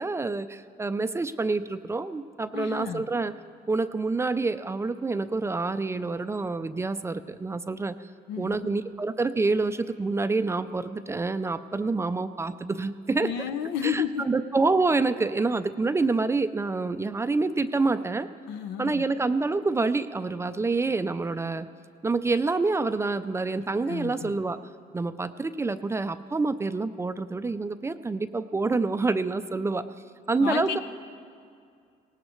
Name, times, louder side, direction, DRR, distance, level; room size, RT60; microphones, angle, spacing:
voice 1, 0.0-3.3 3.7-8.0 8.4-13.3 13.8-18.3 18.8-21.7 22.0-24.6 24.9-29.9 30.3-30.8, right 3 dB, 15° right, 11 dB, 0.4 m, -27 dB
voice 2, 2.5-3.0 8.3-8.7 13.2-14.3 18.5-19.0 23.6-24.3 30.4-30.8, left 8 dB, 85° left, 9 dB, 0.7 m, -32 dB
19.0 x 18.0 x 3.1 m, 2.3 s
cardioid pair, 110°, 17 cm